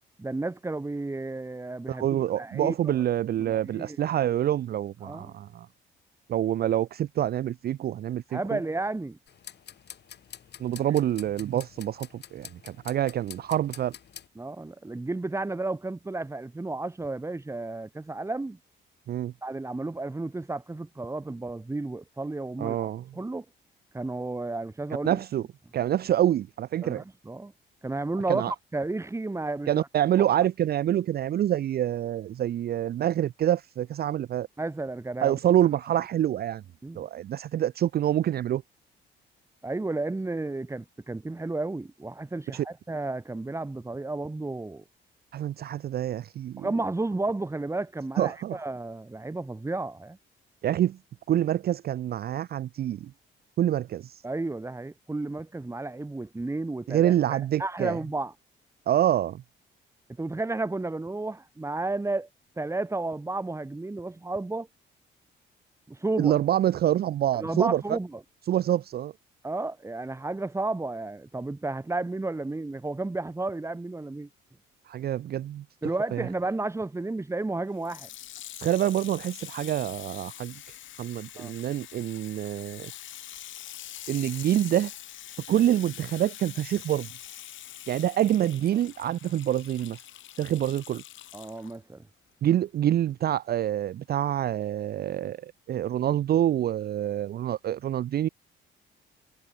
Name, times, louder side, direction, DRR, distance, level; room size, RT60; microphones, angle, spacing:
voice 1, 0.2-3.0 3.4-4.0 5.0-5.3 8.3-9.2 10.9-11.0 14.3-18.6 19.4-23.4 23.9-25.2 26.8-27.5 27.8-29.7 30.2-30.3 34.6-35.4 36.8-37.1 39.6-44.8 46.6-50.2 54.2-58.3 60.2-62.3 62.6-64.7 65.9-66.4 67.4-68.2 69.4-74.3 75.8-78.1 81.4-81.5 91.3-92.0, right 2 dB, 15° right, 1.4 m, -32 dB
voice 2, 1.9-5.7 6.3-8.6 10.6-14.0 19.1-19.3 22.6-23.0 25.0-25.4 25.7-27.0 28.3-28.5 29.7-34.5 35.2-36.6 37.0-38.6 42.5-42.6 45.3-46.7 48.2-48.6 50.6-51.0 51.3-53.1 53.6-54.2 56.9-58.0 58.9-59.4 66.2-67.8 68.5-69.1 74.9-75.6 76.1-76.3 78.5-80.5 81.0-82.9 84.1-84.9 85.5-87.1 87.9-90.0 90.4-91.0 92.4-98.3, right 11 dB, 50° right, 0.5 m, -26 dB
sound 1, 9.3-14.3, left 9 dB, 60° left, 2.6 m, -47 dB
Water tap faucet / Sink (filling or washing), 77.8-91.8 92.4-92.5, left 12 dB, 75° left, 1.8 m, -44 dB
cardioid pair, 90°, 20 cm